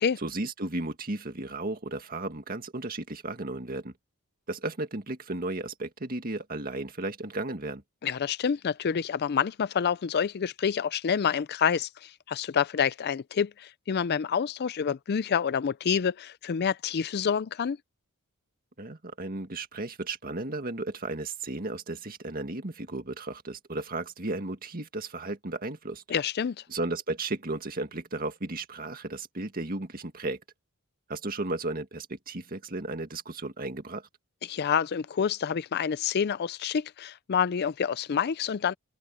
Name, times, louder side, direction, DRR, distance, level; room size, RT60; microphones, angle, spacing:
voice 1, 0.2-3.9 4.5-7.8 18.8-26.0 26.7-30.4 31.1-34.1, right 2 dB, 40° right, 2.0 m, -34 dB
voice 2, 8.0-17.8 26.1-26.6 34.5-38.7, left 7 dB, 45° left, 0.4 m, -28 dB
open air
head